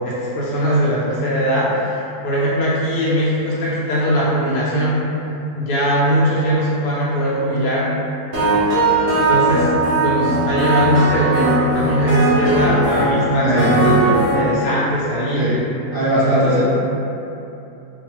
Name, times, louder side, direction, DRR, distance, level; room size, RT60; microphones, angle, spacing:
voice 1, 0.0-5.0 5.6-7.8 9.2-9.7 10.0-15.5 16.2-16.6, equal, 70° left, -8 dB, 1.0 m, -20 dB
sound 1, 8.3-14.3, right 2 dB, 45° right, 0.7 m, -18 dB
voice 2, 13.4-13.9 15.3-15.6 15.9-16.6, equal, 80° right, -13 dB, 0.4 m, -19 dB
2.5 x 2.3 x 3.0 m, 2.9 s
omnidirectional pair, 1.7 m